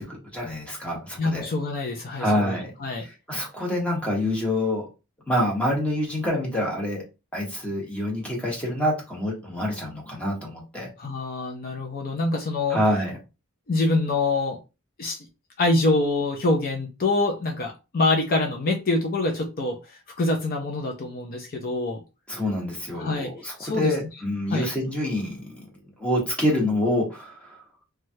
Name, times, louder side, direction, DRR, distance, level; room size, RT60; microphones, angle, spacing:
voice 1, 0.0-1.5 2.2-2.7 3.0-4.8 5.3-7.0 7.3-10.9 12.7-13.1 22.3-25.6 26.0-27.6, left 1 dB, 5° left, -2 dB, 1.0 m, -26 dB
voice 2, 1.2-3.1 11.0-12.8 13.7-14.6 15.0-15.3 15.6-22.0 22.9-23.3 23.6-23.9 24.5-24.7, left 2 dB, 45° left, 2 dB, 0.5 m, -25 dB
3.1 x 2.3 x 2.7 m, 0.28 s
head